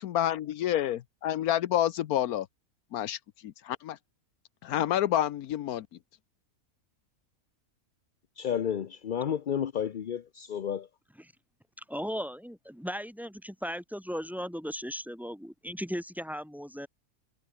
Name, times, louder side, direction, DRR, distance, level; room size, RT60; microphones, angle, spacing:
voice 1, 0.0-2.5 2.9-4.0 4.6-5.9, left 11 dB, 85° left, 1.2 m, -29 dB
voice 2, 8.4-10.9, left 8 dB, 50° left, 0.6 m, -31 dB
voice 3, 11.9-16.9, equal, ahead, 7.9 m, -37 dB
omnidirectional pair, 1.5 m